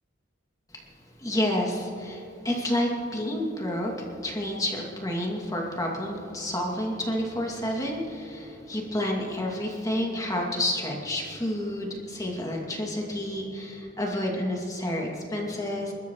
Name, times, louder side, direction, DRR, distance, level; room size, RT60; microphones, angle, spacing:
voice 1, 1.2-15.9, left 1 dB, 15° left, -1 dB, 2.4 m, -30 dB
29.5 x 13.0 x 3.1 m, 2.8 s
head